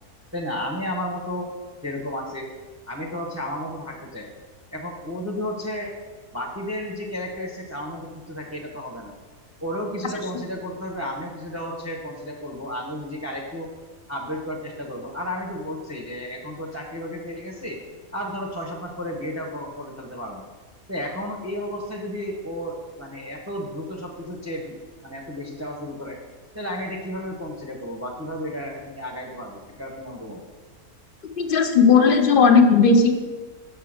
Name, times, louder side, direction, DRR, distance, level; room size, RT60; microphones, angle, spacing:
voice 1, 0.3-1.5 1.8-2.5 2.9-4.3 4.7-5.9 6.3-9.1 9.6-13.7 14.1-17.8 18.1-20.4 20.9-24.7 25.0-26.2 26.5-30.4, left 1 dB, 15° right, -1 dB, 0.7 m, -32 dB
voice 2, 31.2-33.1, left 5 dB, 50° left, 6 dB, 0.6 m, -16 dB
6.8 x 5.6 x 6.4 m, 1.3 s
omnidirectional pair, 1.6 m